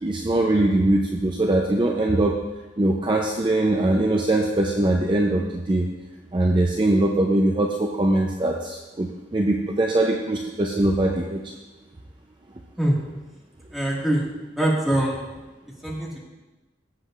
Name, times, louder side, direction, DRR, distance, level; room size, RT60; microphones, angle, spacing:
voice 1, 0.0-2.4 2.8-5.9 6.3-11.4, right 1 dB, 25° right, 1 dB, 0.5 m, -22 dB
voice 2, 13.7-14.3 14.6-15.2 15.8-16.2, right 1 dB, ahead, -5 dB, 1.8 m, -23 dB
15.5 x 7.8 x 2.5 m, 1.1 s
head